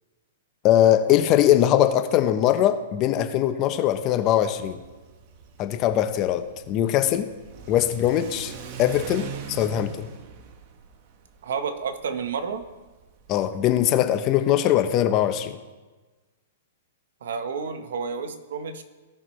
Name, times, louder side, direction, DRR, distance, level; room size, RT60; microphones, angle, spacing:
voice 1, 0.6-4.8 5.6-7.3 7.7-8.5 8.8-10.1 13.3-15.6, left 11 dB, 35° left, 9 dB, 0.8 m, -21 dB
Car / Accelerating revving vroom, 4.6-14.0, right 8 dB, 45° right, 1.0 m, -42 dB
voice 2, 11.4-12.6 17.2-18.8, right 5 dB, 75° right, 8 dB, 1.1 m, -30 dB
16.5 x 5.8 x 3.2 m, 1.3 s
hypercardioid pair, 135°, 0 cm